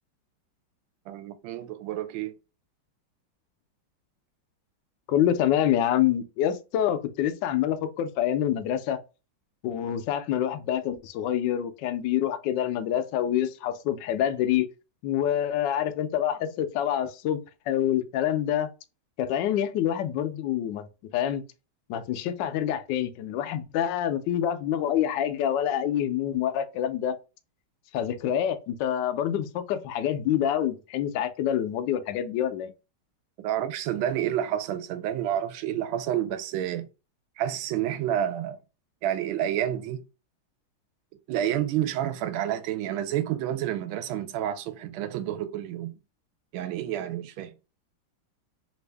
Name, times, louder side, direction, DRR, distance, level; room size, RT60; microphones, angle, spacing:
voice 1, 1.1-2.3 33.4-36.9 37.4-38.6 39.0-40.0 41.3-45.9 46.5-47.5, right 11 dB, 80° right, 1.4 m, -29 dB
voice 2, 5.1-9.0 9.6-14.7 15.0-17.4 17.7-18.7 19.2-20.9 21.1-21.4 21.9-27.2 27.9-32.7, left 10 dB, 75° left, 1.1 m, -26 dB
3.4 x 2.6 x 3.3 m
omnidirectional pair, 2.2 m